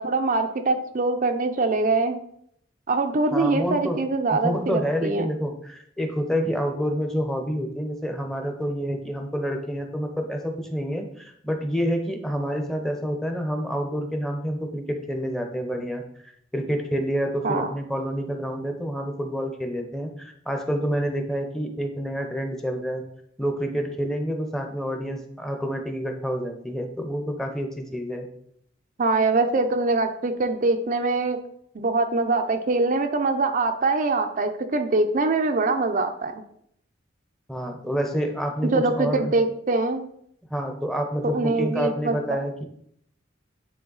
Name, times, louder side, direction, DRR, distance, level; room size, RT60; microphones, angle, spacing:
voice 1, 0.0-2.2 2.9-5.3 17.4-17.7 29.0-31.4 31.7-36.4 38.7-40.0 41.3-42.1, right 3 dB, 45° right, 6 dB, 0.5 m, -23 dB
voice 2, 3.3-4.0 4.3-23.0 23.4-28.3 37.5-39.3 40.5-42.7, equal, ahead, 4 dB, 0.7 m, -28 dB
9.6 x 3.4 x 3.9 m, 0.69 s
head